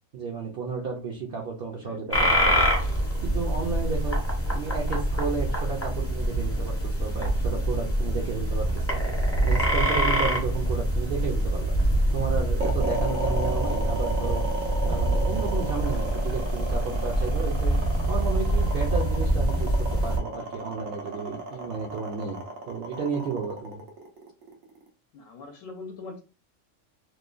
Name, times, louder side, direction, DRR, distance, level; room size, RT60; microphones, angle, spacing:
voice 1, 0.1-2.8 3.2-4.2 4.5-9.0 9.4-11.7 12.1-14.4 14.8-17.8 18.1-23.8, right 5 dB, 65° right, -1 dB, 0.6 m, -32 dB
sound 1, 2.1-20.2, right 1 dB, 15° left, 0.5 m, -25 dB
sound 2, 12.6-24.9, right 2 dB, 90° right, 1.1 m, -34 dB
voice 2, 25.1-26.2, left 3 dB, 80° left, 1 dB, 0.9 m, -42 dB
2.9 x 2.1 x 2.4 m, 0.33 s
omnidirectional pair, 1.3 m